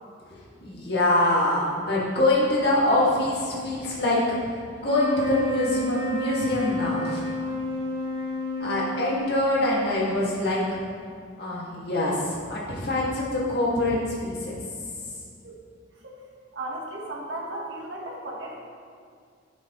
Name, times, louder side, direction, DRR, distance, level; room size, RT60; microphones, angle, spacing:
voice 1, 0.3-4.4 4.8-7.3 8.6-10.8 11.4-14.5, left 1 dB, 60° left, -6 dB, 2.1 m, -24 dB
sound 1, 4.7-10.2, left 1 dB, 65° right, 2.1 m, -30 dB
voice 2, 16.5-18.5, right 1 dB, 80° right, -3 dB, 1.4 m, -35 dB
10.5 x 7.3 x 3.1 m, 2.2 s
head